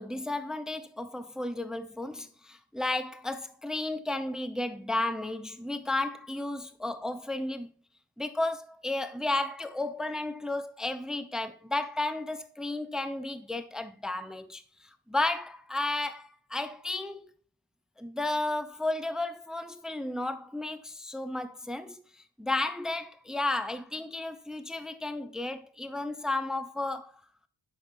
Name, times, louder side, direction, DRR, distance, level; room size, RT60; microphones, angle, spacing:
voice 1, 0.0-7.7 8.2-17.2 18.0-22.0 22.4-27.2, left 2 dB, ahead, 0.5 m, -33 dB
7.8 x 6.1 x 2.6 m
cardioid pair, 65°, 48 cm